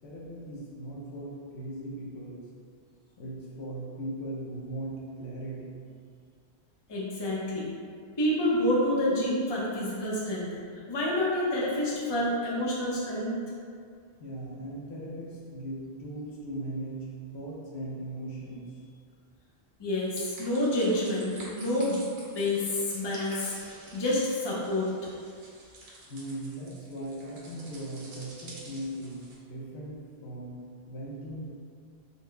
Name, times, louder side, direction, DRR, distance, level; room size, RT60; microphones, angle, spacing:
voice 1, 0.0-2.4 3.2-5.7 14.2-18.9 26.1-30.6 30.9-31.5, right 1 dB, 85° left, -4 dB, 1.0 m, -39 dB
voice 2, 6.9-7.7 8.2-10.5 10.9-13.4 19.8-22.1 22.3-23.5 23.9-24.9, left 1 dB, 30° left, -6 dB, 0.6 m, -28 dB
sound 1, 20.1-29.3, right 2 dB, 70° right, 0.9 m, -49 dB
4.1 x 2.1 x 3.2 m, 2.2 s
omnidirectional pair, 1.1 m